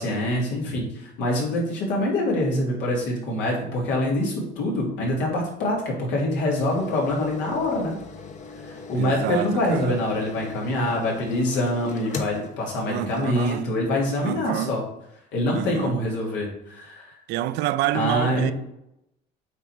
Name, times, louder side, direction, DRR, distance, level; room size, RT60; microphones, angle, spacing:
voice 1, 0.0-8.0 8.9-14.8 15.3-17.2 17.9-18.5, left 1 dB, 80° left, 2.9 m, -25 dB
sound 1, 6.6-13.6 14.1-14.2, left 4 dB, 40° left, 1.1 m, -39 dB
voice 2, 8.9-10.0 12.8-13.7 14.2-14.8 15.5-16.0 17.3-18.5, right 14 dB, 75° right, 0.5 m, -28 dB
8.0 x 4.2 x 5.0 m
cardioid pair, 115°, 18 cm